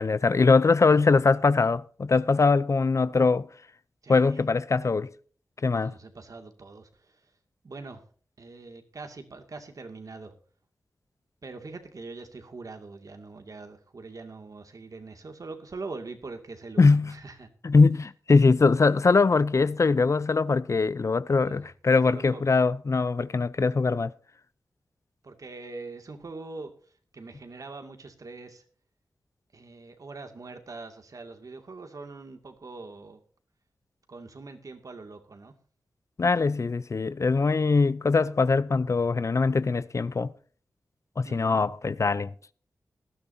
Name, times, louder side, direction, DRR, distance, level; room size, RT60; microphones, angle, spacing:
voice 1, 0.0-3.5 4.1-5.1 5.6-5.9 16.8-17.1 17.6-24.1 36.2-40.3 41.2-42.3, left 4 dB, 50° left, 0.6 m, -22 dB
voice 2, 4.0-4.4 5.7-7.3 7.6-8.0 8.4-10.3 11.4-17.5 21.4-21.7 22.1-22.4 25.2-26.7 27.1-28.6 29.5-33.2 34.1-35.5 41.2-41.6, right 3 dB, 60° right, 2.3 m, -43 dB
19.0 x 12.5 x 2.8 m
cardioid pair, 50°, 7 cm